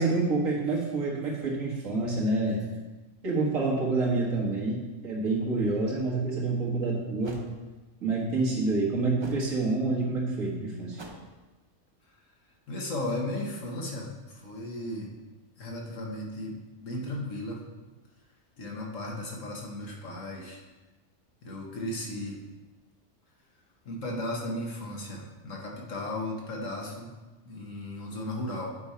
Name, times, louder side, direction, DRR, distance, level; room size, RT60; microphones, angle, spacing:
voice 1, 0.0-2.6 3.2-7.4 8.0-11.0, right 3 dB, 85° right, -3 dB, 2.0 m, -27 dB
sound 1, 7.2-7.5 9.2-9.5 10.9-11.3, right 2 dB, 25° right, 0.6 m, -44 dB
voice 2, 12.7-15.1 15.6-17.6 18.6-20.6 21.4-22.4 23.8-27.1 27.4-28.8, left 1 dB, 70° left, -1 dB, 1.7 m, -35 dB
8.7 x 5.1 x 4.3 m, 1.2 s
omnidirectional pair, 1.4 m